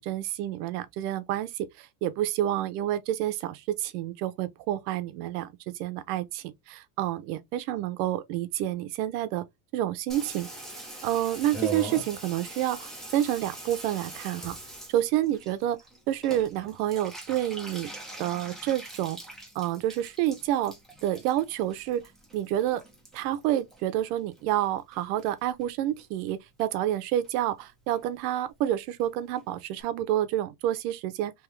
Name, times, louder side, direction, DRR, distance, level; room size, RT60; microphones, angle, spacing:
voice 1, 0.0-9.4 9.7-10.5 11.0-14.6 14.9-15.8 16.1-17.9 18.2-19.2 19.5-20.7 21.0-22.0 22.3-22.8 23.1-31.3, right 12 dB, 75° right, 0.8 m, -29 dB
Water tap faucet / Bathtub (filling or washing), 10.1-24.6 24.9-25.7 26.0-26.1 26.3-26.4 26.6-27.0 27.2-27.3 27.6-27.7 27.9-28.0 28.3-28.4 28.6-28.7 29.0-29.1 29.4-29.5 29.8-29.9, right 2 dB, ahead, 0.5 m, -42 dB
3.6 x 3.0 x 3.1 m
cardioid pair, 175°, 46 cm